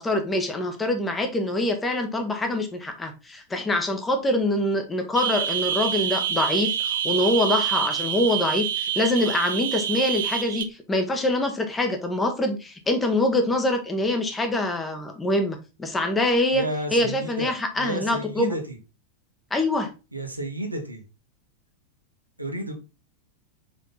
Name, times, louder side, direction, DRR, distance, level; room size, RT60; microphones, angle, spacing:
voice 1, 0.0-16.7 16.9-18.6 19.5-19.9, left 1 dB, 15° left, 5 dB, 1.4 m, -24 dB
sound 1, 5.2-10.6, right 9 dB, 60° right, 0.7 m, -27 dB
voice 2, 16.5-18.8 20.1-21.0 22.4-22.7, right 1 dB, 85° right, 3 dB, 1.4 m, -31 dB
5.2 x 5.1 x 4.0 m, 0.29 s
figure-of-eight pair, 90°, 0 cm